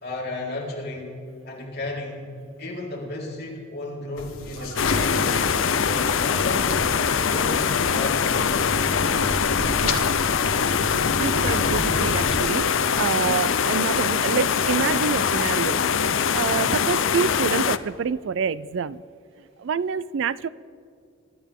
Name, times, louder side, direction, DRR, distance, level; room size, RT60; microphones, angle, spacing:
voice 1, 0.0-2.3 2.6-5.0 5.7-8.8, left 2 dB, 45° left, -5 dB, 4.4 m, -34 dB
sound 1, 4.2-12.4, left 2 dB, 80° left, 1.6 m, -30 dB
voice 2, 4.6-5.2 9.8-10.1 11.2-15.8 16.3-19.0 19.6-20.5, right 6 dB, 60° right, 19 dB, 0.3 m, -27 dB
sound 2, 4.8-17.8, left 7 dB, 60° left, 0.5 m, -23 dB
26.0 x 12.5 x 3.7 m, 2.5 s
head